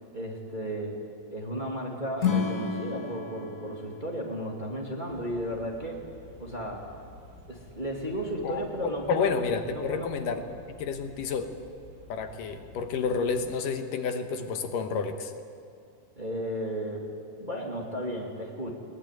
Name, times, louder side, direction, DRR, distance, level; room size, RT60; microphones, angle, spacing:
voice 1, 0.1-1.0 1.3-6.0 6.4-6.9 7.5-9.3 9.7-10.5 16.2-17.1 17.4-18.7, equal, 15° right, -1 dB, 2.1 m, -34 dB
Acoustic guitar / Strum, 2.2-5.5, left 6 dB, 45° left, 1.1 m, -32 dB
sound 1, 5.1-13.6, left 1 dB, 85° right, 4.5 m, -51 dB
voice 2, 8.4-10.4 10.8-11.5 12.1-15.3, left 5 dB, 75° left, 7 dB, 2.8 m, -30 dB
21.0 x 19.0 x 9.2 m, 2.5 s
omnidirectional pair, 3.9 m